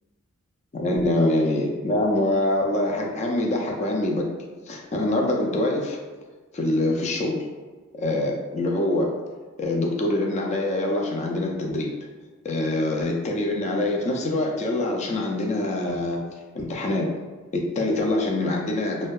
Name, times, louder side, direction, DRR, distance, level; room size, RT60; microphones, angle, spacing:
voice 1, 0.7-4.3 4.7-6.0 6.5-7.4 8.0-9.1 9.6-11.9 12.4-16.2 16.5-17.1 17.5-19.1, left 1 dB, 30° left, 0 dB, 0.3 m, -24 dB
2.6 x 2.1 x 2.3 m, 1.3 s
head